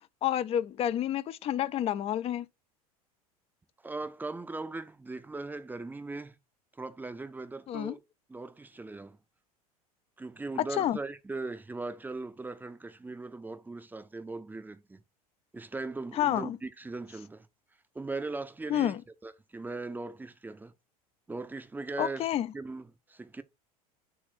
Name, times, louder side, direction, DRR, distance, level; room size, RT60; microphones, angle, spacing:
voice 1, 0.2-2.5 7.7-7.9 10.7-11.0 16.2-16.6 18.7-19.0 22.0-22.5, left 11 dB, 30° left, 0.5 m, -29 dB
voice 2, 3.8-6.4 6.8-8.0 8.3-9.2 10.2-15.0 15.5-17.5 17.9-20.7 21.3-22.3 22.5-23.4, right 3 dB, 10° right, 0.6 m, -39 dB
6.9 x 2.5 x 5.7 m
figure-of-eight pair, 75°, 20 cm